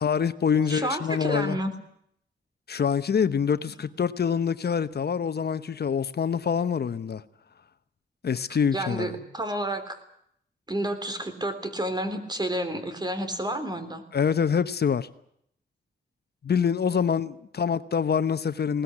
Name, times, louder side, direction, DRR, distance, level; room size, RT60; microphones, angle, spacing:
voice 1, 0.0-1.6 2.7-7.2 8.2-9.1 14.1-15.1 16.4-18.8, left 7 dB, 60° left, 1.0 m, -25 dB
voice 2, 0.6-1.7 3.6-3.7 8.7-10.0 10.7-14.0, right 1 dB, 20° right, 3.5 m, -30 dB
20.5 x 18.5 x 9.9 m
wide cardioid pair, 110°, 19 cm